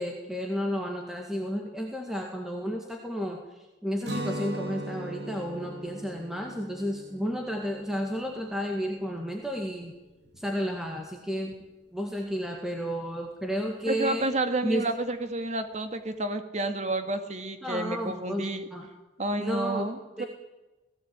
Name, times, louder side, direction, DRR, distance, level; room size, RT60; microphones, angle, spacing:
voice 1, 0.0-3.4 3.8-9.9 10.4-11.5 11.9-14.3 14.6-14.9 17.6-18.9 19.4-19.8 20.2-20.3, equal, 5° right, 1 dB, 2.0 m, -32 dB
Guitar, 4.0-9.9, right 1 dB, 65° right, 3.4 m, -39 dB
voice 2, 13.9-18.7 19.2-20.3, right 2 dB, 40° right, 8 dB, 2.0 m, -30 dB
18.0 x 16.0 x 8.9 m, 1.1 s
head